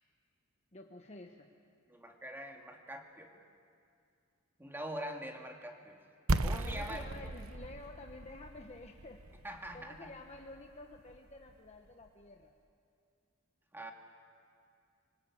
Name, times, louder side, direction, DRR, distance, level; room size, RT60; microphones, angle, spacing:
voice 1, 0.7-1.5 6.6-9.2 9.7-12.5, left 2 dB, 30° left, 3 dB, 1.2 m, -50 dB
voice 2, 1.9-3.3 4.6-6.0 6.4-7.1 9.4-10.1 13.7-13.9, equal, 10° right, 2 dB, 2.3 m, -43 dB
sound 1, 6.3-12.0, right 2 dB, 85° right, 0.9 m, -37 dB
26.0 x 25.0 x 8.6 m, 2.4 s
head